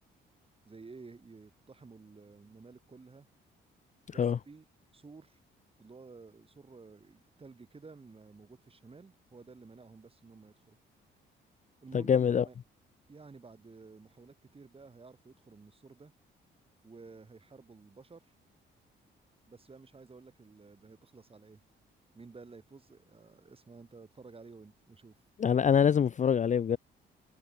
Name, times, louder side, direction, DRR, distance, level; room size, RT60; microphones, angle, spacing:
voice 1, 0.6-3.3 4.1-4.6 4.9-5.4 5.8-10.8 11.8-12.5 13.1-16.1 16.8-18.3 19.5-21.6 22.1-25.2, right 4 dB, 30° right, 6.9 m, -53 dB
voice 2, 11.9-12.4 25.4-26.8, left 7 dB, 40° left, 0.6 m, -25 dB
cardioid pair, 90°, 20 cm